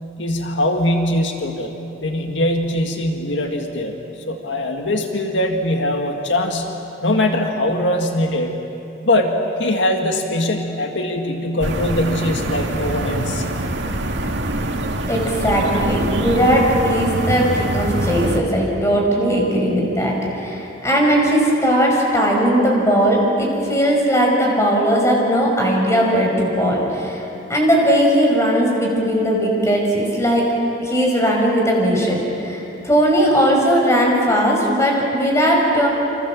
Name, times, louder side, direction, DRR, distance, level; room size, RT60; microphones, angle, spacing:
voice 1, 0.2-1.7 2.0-3.9 4.3-6.7 7.0-8.6 9.0-13.4, left 1 dB, 85° left, 3 dB, 2.0 m, -21 dB
sound 1, 11.6-18.4, right 1 dB, 75° right, 2.1 m, -24 dB
voice 2, 15.1-27.2 27.5-30.5 30.8-35.9, equal, 15° left, -1 dB, 5.7 m, -18 dB
28.5 x 26.5 x 7.5 m, 2.9 s
head